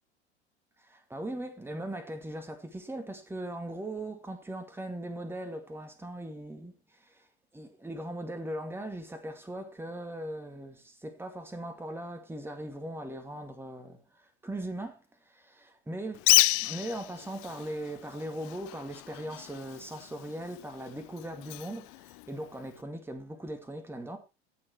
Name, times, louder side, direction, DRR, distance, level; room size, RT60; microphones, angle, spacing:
voice 1, 0.8-7.3 7.5-16.3 16.6-24.2, right 1 dB, 5° right, 2.3 m, -39 dB
Bird, 16.1-22.8, left 23 dB, 50° left, 0.8 m, -31 dB
14.0 x 6.6 x 4.5 m
hypercardioid pair, 85°, 34 cm